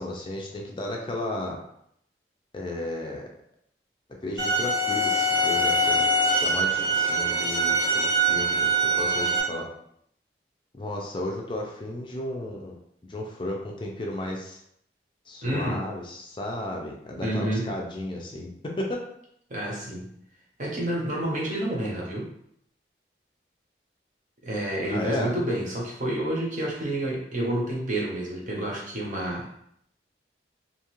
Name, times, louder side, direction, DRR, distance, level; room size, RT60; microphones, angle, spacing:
voice 1, 0.0-1.6 2.5-3.3 4.2-8.7 9.0-9.7 10.8-12.8 13.1-14.6 15.3-19.1 24.8-25.3, left 1 dB, 30° left, 0 dB, 0.4 m, -34 dB
sound 1, 4.4-9.4, right 2 dB, 70° right, 1.0 m, -23 dB
voice 2, 15.4-15.8 17.2-17.7 19.5-20.1 20.6-22.3 24.4-29.5, right 1 dB, 45° right, -3 dB, 0.8 m, -29 dB
2.7 x 2.4 x 3.0 m, 0.70 s
head